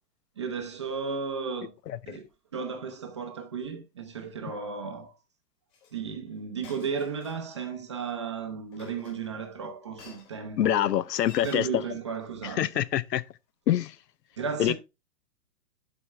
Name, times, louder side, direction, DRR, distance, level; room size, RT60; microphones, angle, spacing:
voice 1, 0.4-1.7 2.1-2.2 2.5-5.1 5.9-10.9 11.4-12.8 14.4-14.7, right 5 dB, 20° right, 0.5 m, -34 dB
Chink clink, 5.7-5.9 6.6-7.6 8.7-9.5 10.0-10.4 11.2-11.6, left 5 dB, 30° left, 3.7 m, -49 dB
voice 2, 10.6-11.6 12.6-13.2 13.7-13.9 14.6-14.7, left 11 dB, 90° left, 0.8 m, -25 dB
12.0 x 4.4 x 3.2 m
hypercardioid pair, 165°, 48 cm